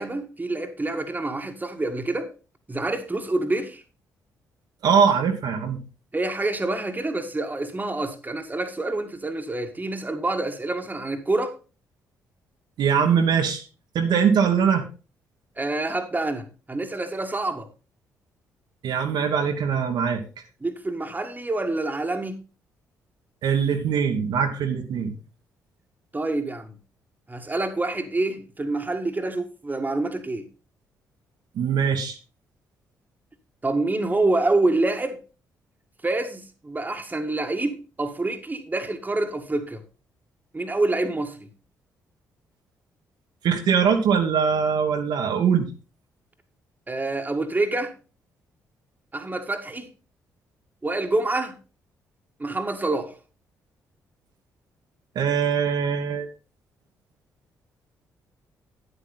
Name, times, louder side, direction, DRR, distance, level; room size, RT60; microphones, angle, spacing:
voice 1, 0.0-2.3 2.7-3.8 6.1-11.6 15.6-17.7 20.6-22.4 26.1-26.7 27.3-30.5 33.6-35.2 36.0-39.8 40.5-41.5 46.9-47.9 49.1-49.9 50.8-51.6 52.4-53.1, right 2 dB, 20° right, 1.7 m, -27 dB
voice 2, 4.8-5.8 12.8-13.6 13.9-14.9 18.8-20.2 23.4-25.1 31.5-32.2 43.4-45.7 55.1-56.3, right 7 dB, 60° right, 1.4 m, -22 dB
10.5 x 8.0 x 4.1 m
figure-of-eight pair, 40°, 8 cm